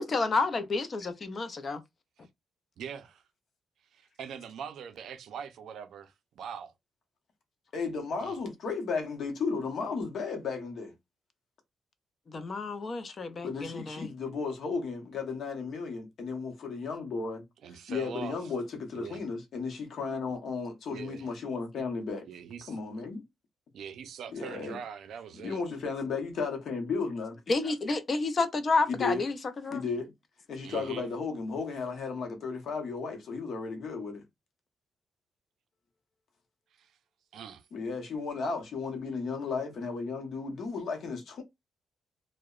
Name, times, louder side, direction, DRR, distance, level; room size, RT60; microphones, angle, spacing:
voice 1, 0.0-1.8 12.3-14.1 27.5-29.8, left 3 dB, 35° left, 0.4 m, -30 dB
voice 2, 2.8-3.2 3.9-6.7 8.2-8.4 17.6-18.4 18.9-19.2 20.9-21.3 22.3-22.8 23.7-25.6 30.6-31.0 36.8-37.0 37.3-37.7, right 7 dB, 70° right, 0.4 m, -42 dB
voice 3, 7.7-10.9 13.4-17.4 17.9-22.3 22.7-23.2 24.3-24.8 25.4-27.4 28.9-29.2 29.7-30.1 30.5-34.2 37.7-41.4, left 4 dB, 55° left, 0.7 m, -34 dB
2.8 x 2.0 x 2.3 m
cardioid pair, 155°, 0 cm